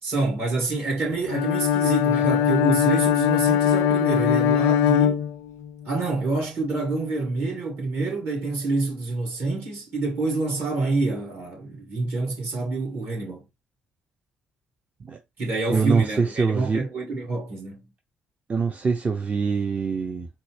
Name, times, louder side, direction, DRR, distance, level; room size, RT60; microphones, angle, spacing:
voice 1, 0.0-5.2 5.9-13.4 15.4-17.8, right 3 dB, 55° right, 2.1 m, -27 dB
Bowed string instrument, 1.3-5.9, left 9 dB, 70° left, 0.3 m, -21 dB
voice 2, 15.7-16.8 18.5-20.3, right 5 dB, 35° right, 0.6 m, -24 dB
4.0 x 2.1 x 3.1 m
hypercardioid pair, 50°, 4 cm